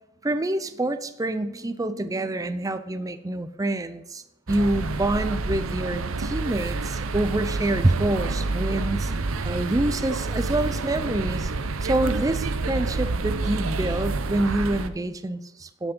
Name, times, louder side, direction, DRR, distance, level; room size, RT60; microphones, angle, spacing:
voice 1, 0.2-9.2 9.4-11.5 11.8-15.9, right 1 dB, 15° right, 11 dB, 0.5 m, -27 dB
sound 1, 4.5-14.9, right 3 dB, 75° right, 0.8 m, -28 dB
10.0 x 8.3 x 5.4 m, 0.94 s
head